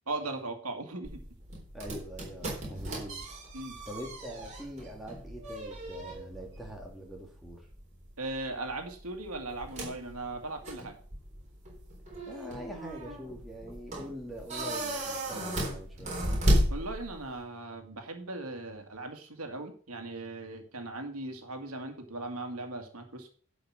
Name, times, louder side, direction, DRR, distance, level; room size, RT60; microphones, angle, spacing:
voice 1, 0.1-1.2 3.5-3.8 8.2-11.0 16.7-23.3, right 2 dB, 85° right, 5 dB, 2.1 m, -38 dB
sound 1, 1.0-17.4, equal, 30° right, 3.7 m, -35 dB
voice 2, 1.7-3.2 3.8-7.7 12.3-16.2, equal, ahead, -2 dB, 2.6 m, -43 dB
11.5 x 5.3 x 6.1 m, 0.43 s
head